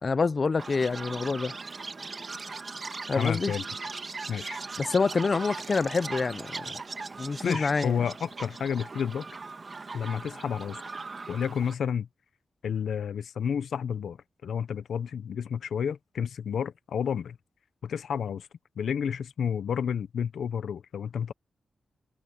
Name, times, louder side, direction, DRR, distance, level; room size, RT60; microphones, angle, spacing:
voice 1, 0.0-1.5 3.1-3.5 4.8-6.8 7.2-8.0, left 4 dB, 40° left, 0.6 m, -27 dB
Chirp tweet, 0.6-11.7, right 4 dB, 35° right, 1.7 m, -39 dB
voice 2, 3.2-3.6 4.3-4.6 7.4-9.3 9.9-10.8 11.3-12.1 12.6-14.2 14.4-17.4 17.8-18.5 18.8-21.3, left 7 dB, 85° left, 0.6 m, -30 dB
wide cardioid pair, 140°, 0 cm